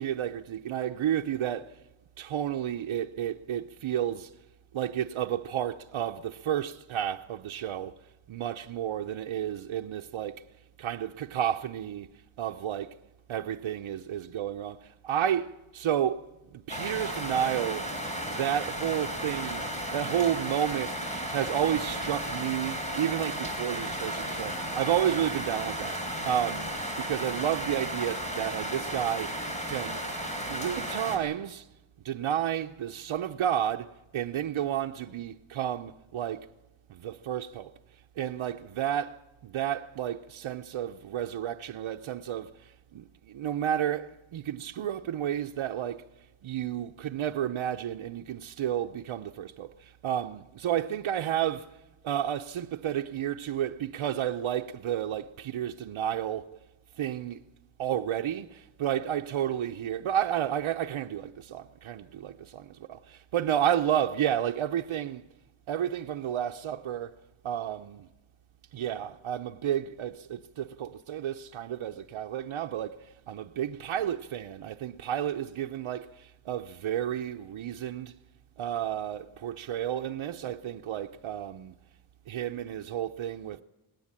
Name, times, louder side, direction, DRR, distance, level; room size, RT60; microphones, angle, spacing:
voice 1, 0.0-1.8 2.2-4.3 4.7-8.0 8.3-10.4 10.8-13.0 13.3-17.9 18.3-26.7 27.0-30.0 30.5-31.7 32.0-36.5 36.9-37.7 38.2-46.0 46.4-56.6 57.0-57.4 57.8-65.3 65.7-67.2 67.4-68.1 68.7-78.2 78.6-81.7 82.3-83.6, right 10 dB, 85° right, 0.8 m, -31 dB
sound 1, 16.7-31.2, equal, 15° left, 4.2 m, -34 dB
20.0 x 18.0 x 9.8 m
wide cardioid pair, 170°, 47 cm